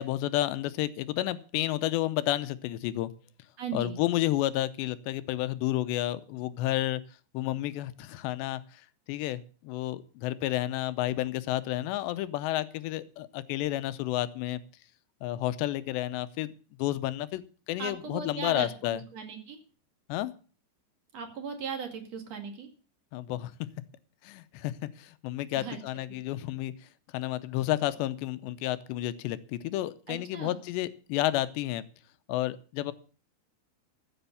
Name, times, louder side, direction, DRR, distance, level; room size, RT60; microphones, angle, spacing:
voice 1, 0.0-3.1 3.7-7.0 7.3-8.6 9.1-14.6 15.2-16.5 16.8-17.4 17.7-19.0 20.1-20.3 23.1-23.5 24.2-24.7 25.0-26.7 27.1-31.8 32.3-32.9, left 15 dB, 85° left, 14 dB, 2.9 m, -31 dB
voice 2, 3.6-4.0 17.8-19.6 21.1-22.7 25.6-25.8 26.3-26.4 30.1-30.6, right 5 dB, 45° right, 5 dB, 2.8 m, -38 dB
14.5 x 8.0 x 6.9 m, 0.38 s
omnidirectional pair, 5.0 m